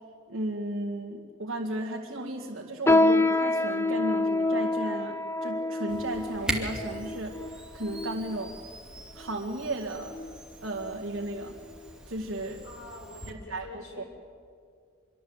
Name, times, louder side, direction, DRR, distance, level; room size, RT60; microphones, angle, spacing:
voice 1, 0.3-8.6 9.2-10.2 10.6-11.6 12.1-12.6 13.5-14.0, right 1 dB, 70° right, 0 dB, 2.0 m, -34 dB
sound 1, 2.9-8.5 9.2-9.3 10.1-10.4 10.8-10.9 11.6-11.7, left 2 dB, 15° left, 0.6 m, -27 dB
Camera, 5.9-13.3, right 1 dB, 5° right, 2.5 m, -41 dB
voice 2, 12.6-14.1, left 2 dB, 80° left, 2 dB, 6.3 m, -46 dB
26.0 x 23.5 x 8.1 m, 2.2 s
head